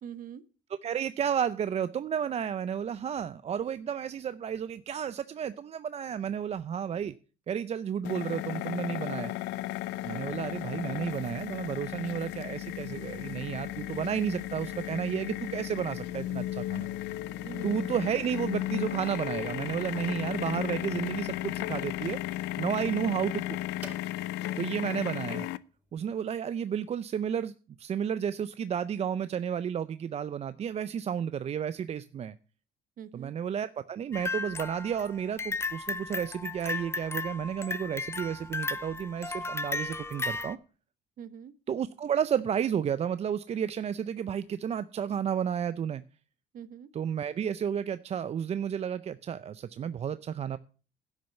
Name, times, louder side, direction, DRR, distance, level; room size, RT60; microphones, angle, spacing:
voice 1, 0.0-0.4 17.4-17.8 22.9-23.2 24.5-24.9 33.0-33.3 41.2-41.5 46.5-46.9, right 8 dB, 55° right, 15 dB, 1.0 m, -44 dB
voice 2, 0.8-7.1 7.5-9.3 10.0-16.9 17.6-22.2 22.6-23.6 24.6-25.5 25.9-27.5 27.8-32.3 33.1-40.6 41.7-46.0 46.9-50.6, right 8 dB, 40° right, 14 dB, 0.5 m, -32 dB
sound 1, 8.0-25.6, left 15 dB, 90° left, 0.5 m, -35 dB
sound 2, 8.8-26.4, right 2 dB, 10° right, 4.9 m, -53 dB
sound 3, 34.1-40.6, left 3 dB, 15° left, 0.8 m, -35 dB
11.5 x 6.4 x 8.0 m, 0.37 s
cardioid pair, 110°, 17 cm